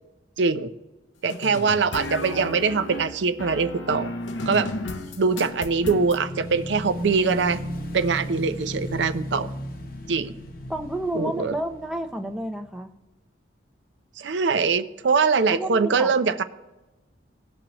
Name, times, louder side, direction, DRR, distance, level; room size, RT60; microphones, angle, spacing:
voice 1, 0.4-0.7 1.2-4.1 4.5-4.7 5.2-7.6 7.9-9.5 10.1-10.3 11.2-11.6 14.2-16.4, right 5 dB, 80° right, 10 dB, 0.5 m, -23 dB
sound 1, 1.3-6.2, left 2 dB, 85° left, 0.7 m, -33 dB
Motorcycle / Engine, 4.6-12.8, left 1 dB, 50° left, 0.8 m, -36 dB
voice 2, 4.9-5.2 10.7-12.9 15.5-16.1, right 1 dB, 5° right, 4 dB, 0.5 m, -31 dB
17.5 x 6.1 x 3.0 m, 1.1 s
head